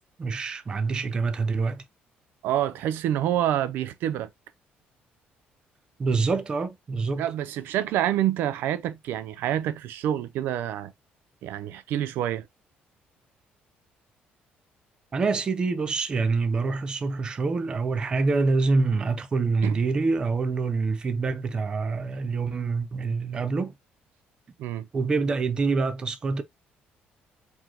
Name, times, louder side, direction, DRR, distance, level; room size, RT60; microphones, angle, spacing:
voice 1, 0.2-1.8 6.0-7.3 15.1-23.7 24.9-26.4, right 4 dB, 25° right, 0.5 m, -26 dB
voice 2, 2.4-4.3 7.2-10.9 11.4-12.5 19.6-19.8 24.6-24.9, right 11 dB, 75° right, 0.5 m, -27 dB
4.7 x 2.1 x 3.8 m
cardioid pair, 180°, 4 cm